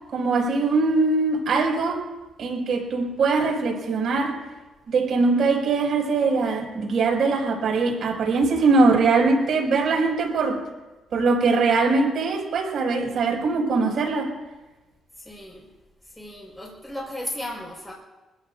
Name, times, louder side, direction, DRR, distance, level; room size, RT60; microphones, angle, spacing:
voice 1, 0.1-2.0 2.4-4.4 4.9-10.6 11.1-14.3, right 3 dB, 60° right, 0 dB, 6.3 m, -22 dB
voice 2, 15.2-15.7 16.2-17.9, left 1 dB, ahead, -2 dB, 5.2 m, -35 dB
26.5 x 16.0 x 2.7 m, 1.1 s
cardioid pair, 90°, 0 cm